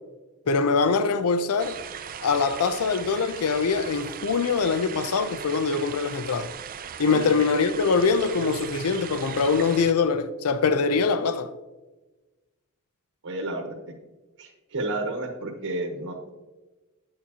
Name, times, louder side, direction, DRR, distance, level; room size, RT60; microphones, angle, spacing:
voice 1, 0.5-1.8 2.2-6.5 7.0-11.5, left 4 dB, 75° left, 0.5 m, -23 dB
sound 1, 1.6-9.9, right 8 dB, 40° right, 0.4 m, -38 dB
voice 2, 13.2-13.7 14.4-16.3, right 2 dB, 65° right, 1.1 m, -31 dB
9.1 x 6.8 x 2.8 m
head